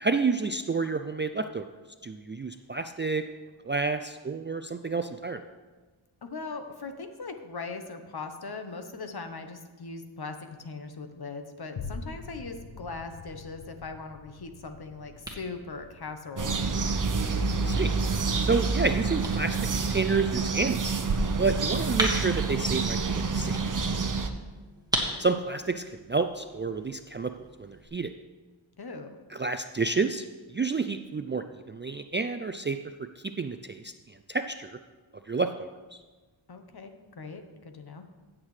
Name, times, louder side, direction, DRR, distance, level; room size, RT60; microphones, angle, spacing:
voice 1, 0.0-1.7 2.0-3.2 3.6-5.4 17.7-17.9 18.4-19.6 19.9-20.8 21.4-23.6 25.2-27.3 27.6-28.1 29.3-33.9 34.3-34.8 35.3-35.7, right 4 dB, 25° right, 8 dB, 0.3 m, -29 dB
voice 2, 6.2-16.6 28.8-29.2 36.5-38.0, left 4 dB, 50° left, 7 dB, 1.0 m, -40 dB
sound 1, 11.8-20.3 20.8-20.9, left 4 dB, 85° left, 0.9 m, -46 dB
sound 2, 14.4-27.9, right 1 dB, 10° right, 1.8 m, -39 dB
sound 3, 16.4-24.3, right 4 dB, 40° right, 0.8 m, -28 dB
15.0 x 7.4 x 3.2 m, 1.3 s
wide cardioid pair, 70°, 48 cm